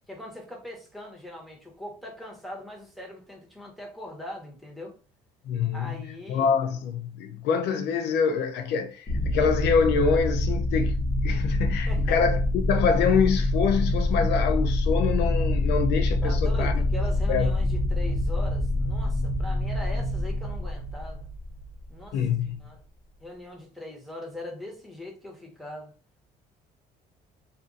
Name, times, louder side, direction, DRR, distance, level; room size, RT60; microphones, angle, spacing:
voice 1, 0.1-4.9 5.7-6.5 11.9-12.2 16.2-21.3 21.9-22.3 22.6-22.8 23.2-25.9, left 1 dB, ahead, 1.1 m, -40 dB
voice 2, 5.5-5.9 6.3-11.0 11.2-16.8 17.3-17.5 22.1-22.6, left 6 dB, 85° left, 0.5 m, -25 dB
sound 1, 9.1-22.1, left 1 dB, 40° left, 1.0 m, -26 dB
2.5 x 2.5 x 3.8 m
cardioid pair, 110°, 17 cm